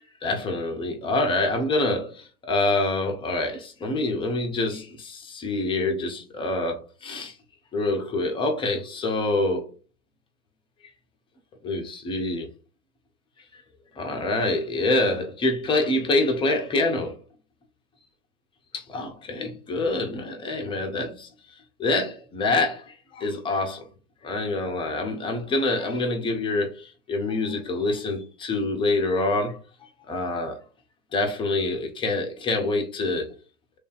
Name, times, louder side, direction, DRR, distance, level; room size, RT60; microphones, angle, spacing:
voice 1, 0.2-7.3 7.7-9.7 11.6-12.5 13.5-13.6 14.0-17.2 18.7-21.3 21.8-23.9 24.2-29.6 30.1-30.6 31.1-33.3, left 2 dB, 10° left, 0.6 m, -26 dB
3.3 x 2.7 x 3.9 m
hypercardioid pair, 110°, 41 cm